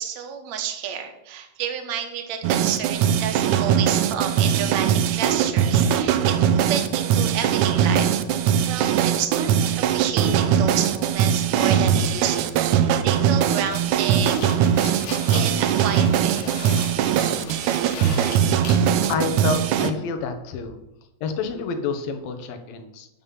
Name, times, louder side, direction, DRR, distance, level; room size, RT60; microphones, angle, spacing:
voice 1, 0.0-8.1 8.7-14.7 15.3-16.5, right 8 dB, 60° right, 5 dB, 2.3 m, -30 dB
sound 1, 2.4-19.9, right 9 dB, 75° right, 1.8 m, -21 dB
sound 2, 13.5-19.2, left 3 dB, 60° left, 3.8 m, -37 dB
voice 2, 19.1-20.8 21.2-23.1, left 4 dB, 80° left, 7 dB, 3.0 m, -28 dB
12.0 x 5.7 x 7.5 m, 0.88 s
omnidirectional pair, 4.1 m